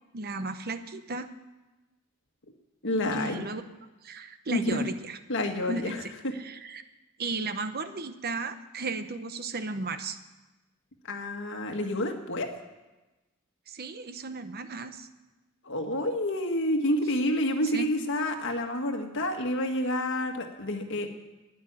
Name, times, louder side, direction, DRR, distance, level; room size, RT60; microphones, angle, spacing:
voice 1, 0.1-1.3 3.1-3.6 4.0-5.2 5.7-6.8 7.2-10.2 13.7-15.1 17.7-17.9, right 3 dB, 45° right, 10 dB, 0.9 m, -35 dB
voice 2, 2.8-3.4 4.5-4.9 5.3-6.0 6.2-6.3 11.1-12.5 15.6-21.1, left 1 dB, 60° left, 4 dB, 1.7 m, -29 dB
11.5 x 10.0 x 10.0 m, 1.1 s
head